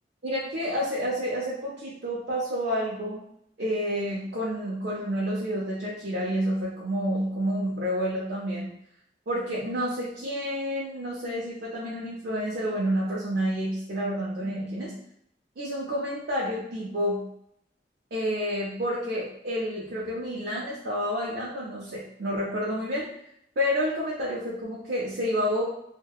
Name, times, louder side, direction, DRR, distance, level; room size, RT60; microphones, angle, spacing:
voice 1, 0.2-3.2 3.6-8.7 9.3-14.9 15.6-17.2 18.1-23.1 23.6-25.6, equal, 60° right, -7 dB, 0.5 m, -29 dB
2.6 x 2.1 x 2.3 m, 0.74 s
head